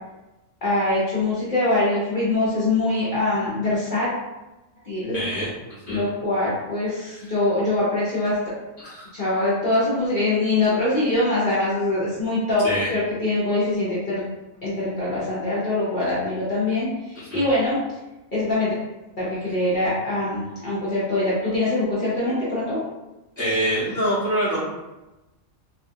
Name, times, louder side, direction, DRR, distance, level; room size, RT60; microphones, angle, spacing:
voice 1, 0.6-4.1 4.8-5.2 5.9-8.4 9.1-12.6 12.9-14.2 14.6-17.8 18.3-18.7 19.2-22.8, left 2 dB, 45° left, -9 dB, 0.7 m, -23 dB
voice 2, 5.1-5.5 5.9-6.0 7.0-7.3 8.8-9.1 12.6-12.9 17.3-17.4 23.4-24.6, equal, 15° right, -10 dB, 0.6 m, -25 dB
2.6 x 2.3 x 2.6 m, 1.0 s
omnidirectional pair, 1.4 m